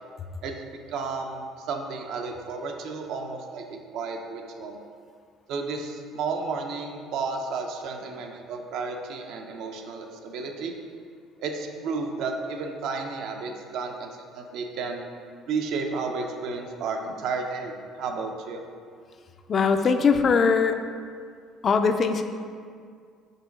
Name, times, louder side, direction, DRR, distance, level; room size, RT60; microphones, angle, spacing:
voice 1, 0.4-4.8 5.5-10.7 11.4-15.0 15.5-18.6, right 4 dB, 70° right, 3 dB, 0.7 m, -32 dB
voice 2, 19.5-20.8 21.6-22.2, left 5 dB, 40° left, 7 dB, 0.4 m, -21 dB
5.4 x 3.8 x 5.2 m, 2.1 s
cardioid pair, 110°, 0 cm